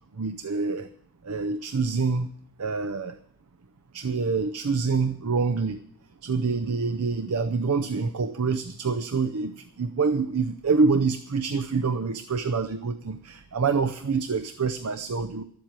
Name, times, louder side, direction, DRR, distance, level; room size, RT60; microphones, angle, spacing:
voice 1, 0.2-0.9 1.2-2.3 2.6-3.2 3.9-5.8 6.2-15.4, right 4 dB, 80° right, 11 dB, 0.6 m, -26 dB
12.5 x 7.7 x 8.8 m, 0.65 s
head